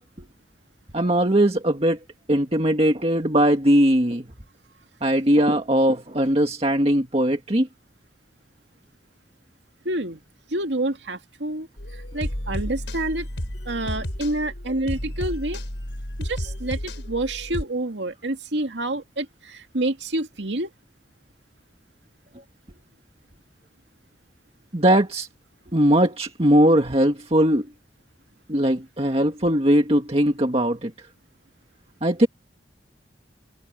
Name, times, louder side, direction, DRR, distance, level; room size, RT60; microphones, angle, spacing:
voice 1, 0.9-2.0 2.3-4.3 5.0-7.7 24.7-25.3 25.7-27.7 28.5-31.1 32.0-32.3, right 1 dB, 35° right, 1.8 m, -20 dB
voice 2, 9.8-10.2 10.5-11.7 11.9-13.3 13.7-15.6 16.2-16.8 17.1-20.7, right 1 dB, 80° right, 2.2 m, -28 dB
sound 1, 11.8-17.6, equal, 90° left, 4.2 m, -32 dB
head